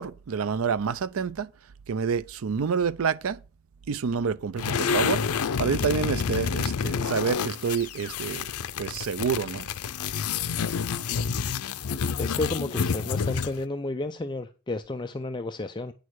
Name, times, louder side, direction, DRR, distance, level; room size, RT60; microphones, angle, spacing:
voice 1, 0.0-1.5 1.9-3.4 3.9-5.2 5.6-8.5 8.8-9.7, right 6 dB, 70° right, 0.5 m, -28 dB
sound 1, 4.6-13.6, left 6 dB, 85° left, 0.5 m, -29 dB
voice 2, 12.2-15.9, left 2 dB, 20° left, 0.4 m, -32 dB
9.5 x 6.4 x 4.7 m
head